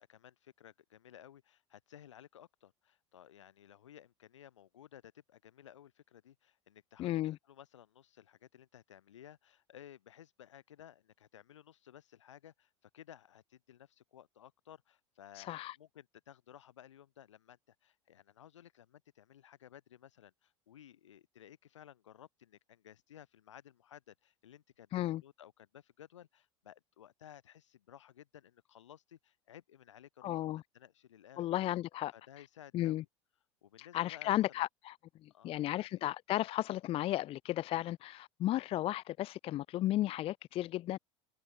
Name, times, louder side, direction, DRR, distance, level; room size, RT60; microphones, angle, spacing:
voice 1, 0.0-24.9 25.2-30.5 30.7-31.5 32.1-33.1 33.6-34.6 35.3-36.0, left 10 dB, 70° left, 4.5 m, -57 dB
voice 2, 7.0-7.4 15.4-15.8 24.9-25.2 30.2-30.6 31.4-32.1 32.7-33.0 33.8-35.0 35.2-41.0, left 14 dB, 35° left, 0.6 m, -34 dB
figure-of-eight pair, 75°, 16 cm